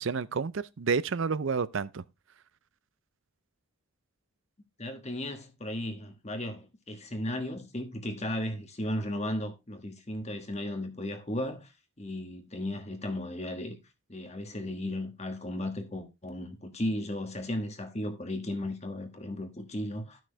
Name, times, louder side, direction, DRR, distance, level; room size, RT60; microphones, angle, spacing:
voice 1, 0.0-2.0, right 5 dB, 55° right, 0.5 m, -30 dB
voice 2, 4.8-11.7 12.0-13.8 14.1-20.2, left 1 dB, 30° left, 1.4 m, -35 dB
13.5 x 6.2 x 3.3 m
head